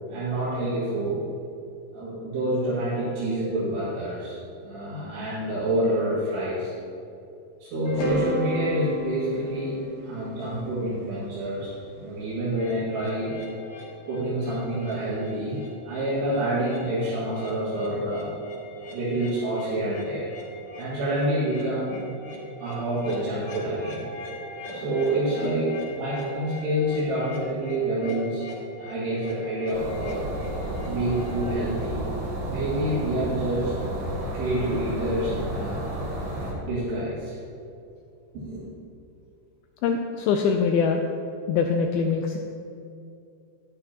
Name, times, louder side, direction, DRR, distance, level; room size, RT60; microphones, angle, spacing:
voice 1, 0.1-1.2 1.9-6.7 7.6-9.8 10.0-13.3 14.1-18.3 18.9-20.3 20.8-22.1 22.6-24.0 24.7-28.5 28.8-30.3 30.8-32.0 32.4-33.7 34.3-35.8 36.5-37.4 38.3-38.6, right 1 dB, 75° right, -10 dB, 4.1 m, -27 dB
sound 1, 7.8-12.0, right 1 dB, 65° left, 1.6 m, -32 dB
sound 2, 12.5-31.5, equal, 50° left, 3.1 m, -42 dB
sound 3, 29.7-36.5, right 1 dB, 55° right, 1.4 m, -32 dB
voice 2, 39.8-41.0 41.5-42.4, left 5 dB, 85° left, 3 dB, 2.1 m, -23 dB
11.0 x 10.5 x 2.9 m, 2.6 s
omnidirectional pair, 4.8 m